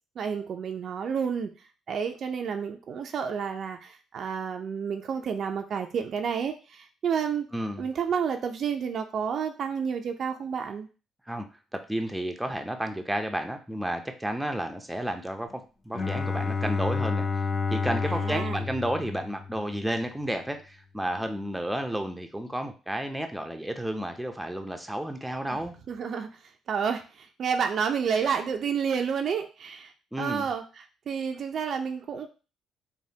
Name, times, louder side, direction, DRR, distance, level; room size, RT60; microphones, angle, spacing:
voice 1, 0.2-1.5 1.9-7.5 7.8-10.9 18.0-18.6 25.5-26.3 26.7-32.3, right 7 dB, 60° right, 6 dB, 0.4 m, -30 dB
voice 2, 7.5-7.9 11.3-11.5 11.7-17.4 17.7-25.7 30.1-30.5, right 1 dB, 5° right, 5 dB, 0.5 m, -32 dB
Bowed string instrument, 15.9-19.9, left 4 dB, 35° left, 0.7 m, -30 dB
3.3 x 2.2 x 2.7 m, 0.34 s
supercardioid pair, 60°, 0 cm